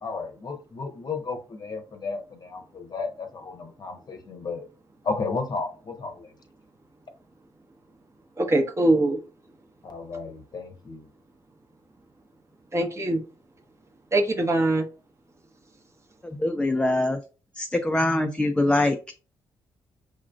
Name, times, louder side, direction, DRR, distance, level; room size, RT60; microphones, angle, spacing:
voice 1, 0.0-4.6 5.0-6.3 9.8-11.0, left 4 dB, 35° left, 0.8 m, -33 dB
voice 2, 8.4-9.2 12.7-13.2 14.1-14.8, right 2 dB, 25° right, 0.8 m, -22 dB
voice 3, 16.2-17.2 17.6-19.1, left 1 dB, 10° left, 0.4 m, -23 dB
6.2 x 2.4 x 2.3 m
figure-of-eight pair, 40°, 12 cm